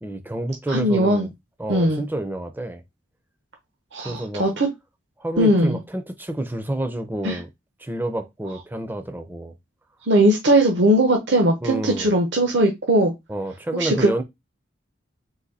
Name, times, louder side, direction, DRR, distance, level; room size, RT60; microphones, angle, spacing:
voice 1, 0.0-1.3 1.6-2.8 4.0-4.5 5.2-7.5 7.8-9.5 11.6-12.1 13.3-14.2, right 1 dB, 10° right, 0.5 m, -29 dB
voice 2, 0.7-1.3 1.7-2.0 3.9-4.7 5.4-5.8 7.2-7.4 10.1-13.1 13.7-14.1, right 1 dB, 65° right, 0.8 m, -19 dB
4.0 x 2.7 x 4.1 m
head